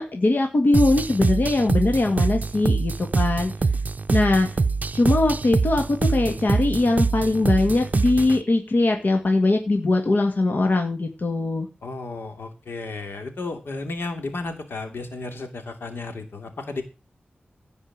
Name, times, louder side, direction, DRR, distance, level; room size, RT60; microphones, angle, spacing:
voice 1, 0.0-3.5 4.1-4.5 4.9-11.7, left 2 dB, 55° left, 4 dB, 2.0 m, -21 dB
sound 1, 0.7-8.4, right 4 dB, 45° right, 0.6 m, -24 dB
voice 2, 11.8-16.8, left 3 dB, 80° left, 6 dB, 2.7 m, -33 dB
16.0 x 5.4 x 7.4 m, 0.30 s
wide cardioid pair, 105°, 4 cm